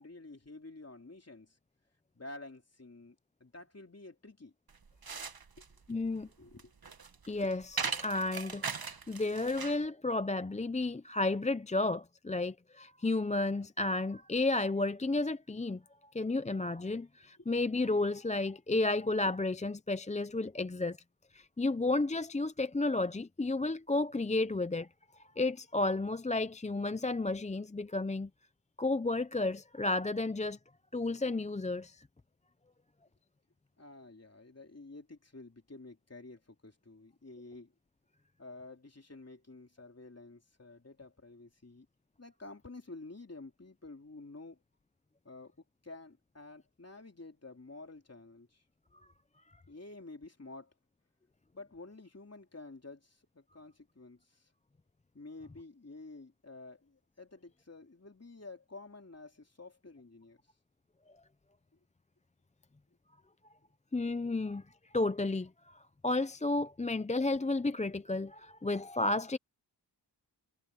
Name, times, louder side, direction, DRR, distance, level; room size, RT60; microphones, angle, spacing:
voice 1, 0.0-1.6 2.1-4.5 5.6-5.7 6.4-6.7 17.4-17.5 33.8-37.7 38.4-41.9 42.2-44.6 45.2-45.5 45.8-48.6 49.7-50.7 51.5-54.5 55.1-60.4, left 2 dB, 35° left, 3.3 m, -50 dB
sound 1, 4.7-9.9, right 5 dB, 60° right, 1.3 m, -40 dB
voice 2, 5.9-6.3 7.3-15.8 16.1-21.0 21.3-24.9 25.4-28.3 28.8-30.6 30.9-32.0 63.9-64.6 64.9-69.4, left 2 dB, 15° left, 0.5 m, -32 dB
wide cardioid pair, 75°, 41 cm